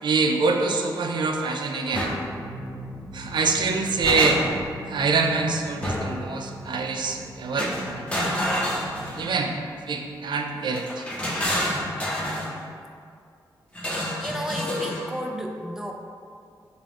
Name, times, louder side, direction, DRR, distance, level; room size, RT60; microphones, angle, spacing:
voice 1, 0.0-2.2 3.1-4.4 4.9-8.3 9.2-9.6 9.9-11.1, right 4 dB, 70° right, 3 dB, 0.4 m, -25 dB
sound 1, 1.9-10.6, equal, 75° left, 0.7 m, -41 dB
sound 2, 1.9-2.2 3.6-4.7 5.8-6.2 7.6-9.4 10.7-12.5 13.7-15.1, equal, 15° left, 0.8 m, -28 dB
voice 2, 14.2-15.9, equal, 5° right, 2 dB, 0.4 m, -33 dB
3.9 x 2.3 x 3.4 m, 2.3 s
cardioid pair, 65°, 8 cm